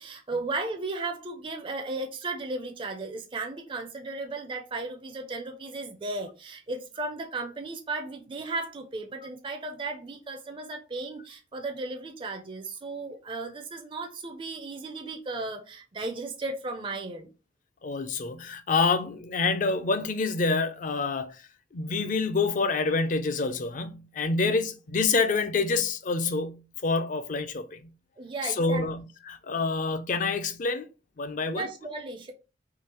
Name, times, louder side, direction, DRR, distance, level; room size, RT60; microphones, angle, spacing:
voice 1, 0.0-17.3 24.4-24.5 28.2-28.9 31.5-32.3, right 3 dB, 25° right, 0.4 m, -35 dB
voice 2, 17.8-21.4 21.7-27.9 28.4-30.9 31.2-31.7, left 4 dB, 45° left, 0.4 m, -27 dB
3.7 x 2.7 x 2.9 m
head